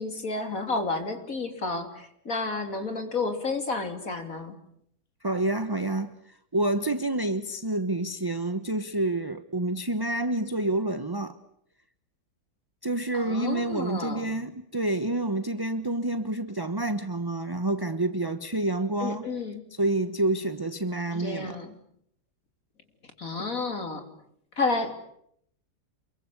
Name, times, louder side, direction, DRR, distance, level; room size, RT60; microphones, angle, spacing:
voice 1, 0.0-4.5 13.1-14.3 19.0-19.6 21.1-21.7 23.2-24.0 24.6-24.9, left 3 dB, 50° left, 3.5 m, -31 dB
voice 2, 5.2-11.4 12.8-19.3 19.8-21.6, right 2 dB, 15° right, 0.9 m, -28 dB
28.5 x 23.0 x 8.4 m
omnidirectional pair, 1.8 m